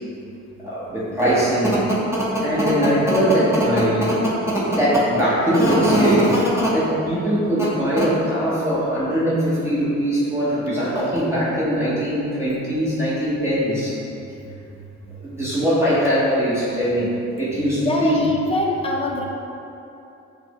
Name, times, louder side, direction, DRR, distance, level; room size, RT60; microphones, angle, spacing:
voice 1, 0.6-1.9 2.3-4.2 4.5-6.4 6.7-14.0 15.1-17.1 17.4-18.2, equal, 10° right, -10 dB, 0.9 m, -20 dB
voice 2, 17.8-19.2, left 2 dB, 20° left, -1 dB, 0.5 m, -23 dB
5.9 x 2.1 x 2.9 m, 2.8 s
cardioid pair, 90°, 30 cm